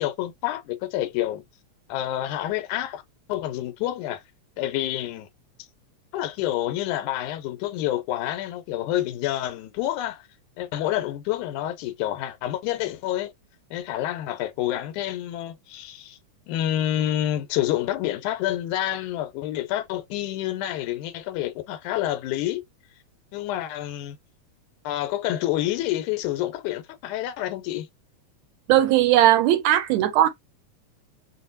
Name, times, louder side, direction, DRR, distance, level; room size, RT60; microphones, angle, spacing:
voice 1, 0.0-1.5 1.9-3.0 3.3-4.2 4.6-5.3 6.1-10.3 10.6-13.3 13.7-16.2 16.5-22.6 23.3-24.2 24.8-27.9, left 13 dB, 85° left, 2.1 m, -28 dB
voice 2, 28.7-30.3, right 13 dB, 80° right, 1.8 m, -18 dB
5.6 x 2.1 x 2.6 m
omnidirectional pair, 3.4 m